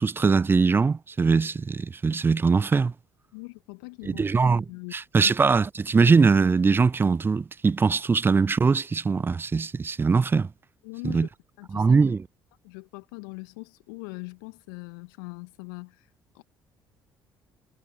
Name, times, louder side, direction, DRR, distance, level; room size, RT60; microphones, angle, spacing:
voice 1, 0.0-2.9 4.1-4.6 4.9-10.5 11.0-11.3 11.7-12.2, right 4 dB, 20° right, 0.3 m, -21 dB
voice 2, 3.3-4.2 4.7-4.9 5.2-5.3 10.8-11.3 11.6-12.0 12.6-16.1 16.3-16.4, left 32 dB, 75° left, 1.8 m, -41 dB
figure-of-eight pair, 50°, 12 cm